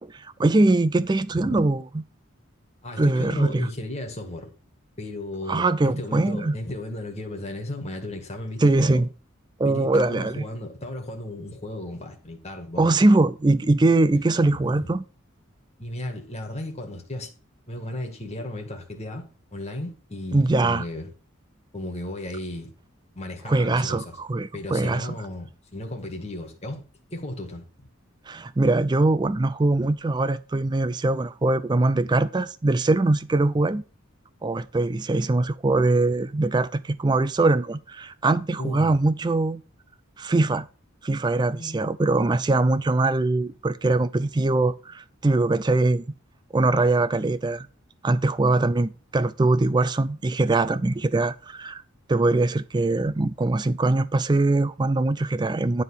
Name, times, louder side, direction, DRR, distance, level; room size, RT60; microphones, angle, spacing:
voice 1, 0.0-1.8 3.0-3.7 5.5-6.6 8.6-9.1 9.6-10.4 12.8-15.0 20.3-20.8 23.5-25.1 28.3-33.8 34.4-39.6 40.2-40.7 41.0-46.0 46.5-47.7 48.0-51.8 52.1-55.8, right 2 dB, 20° right, 0.3 m, -22 dB
voice 2, 2.8-4.5 5.0-9.0 9.6-13.0 14.1-14.2 14.6-14.9 15.8-17.3 17.7-19.2 19.5-21.1 21.7-22.7 23.1-24.2 24.5-26.8 27.1-27.7 32.0-32.1 33.4-33.6 38.6-39.0 41.5-41.8, left 1 dB, 30° left, 1.8 m, -35 dB
9.8 x 3.7 x 7.0 m
head